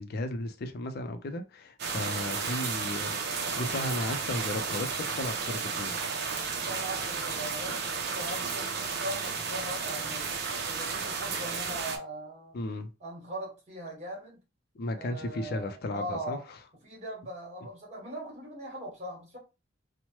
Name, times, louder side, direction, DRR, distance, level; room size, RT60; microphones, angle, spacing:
voice 1, 0.0-5.9 12.5-12.9 14.8-16.4, left 1 dB, 55° left, 0.4 m, -35 dB
sound 1, 1.8-12.0, right 5 dB, 60° right, 0.6 m, -33 dB
voice 2, 6.6-10.3 10.7-12.6 13.0-14.4 14.9-16.4 16.8-19.4, right 1 dB, 35° right, 1.3 m, -40 dB
3.0 x 2.1 x 2.9 m
head